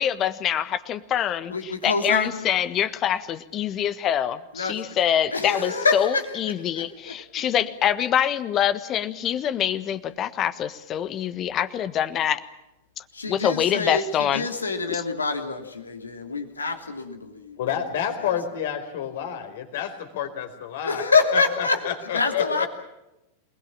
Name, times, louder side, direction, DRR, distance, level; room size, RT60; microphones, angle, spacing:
voice 1, 0.0-12.4 13.0-13.1 13.3-14.4 14.9-15.0, left 10 dB, 30° left, 14 dB, 1.4 m, -25 dB
voice 2, 1.5-2.5 4.5-4.8 5.3-7.1 13.2-17.6 20.8-21.8 22.1-22.7, left 4 dB, 75° left, 6 dB, 3.0 m, -26 dB
voice 3, 17.6-21.0 21.3-22.7, left 9 dB, 55° left, 7 dB, 4.3 m, -29 dB
27.5 x 20.5 x 7.4 m, 0.92 s
figure-of-eight pair, 90°, 0 cm